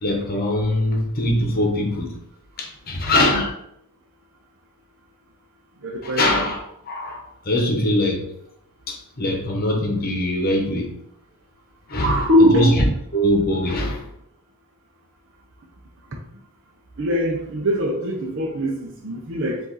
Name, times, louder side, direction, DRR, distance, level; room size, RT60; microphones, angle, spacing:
voice 1, 0.0-2.1 2.6-3.5 6.0-8.2 8.9-10.9 11.9-12.8 13.1-14.1, left 1 dB, 45° left, 1 dB, 1.0 m, -22 dB
voice 2, 5.8-6.5 12.0-12.8 17.0-19.6, equal, 60° right, 0 dB, 0.6 m, -21 dB
4.9 x 2.6 x 4.0 m, 0.76 s
head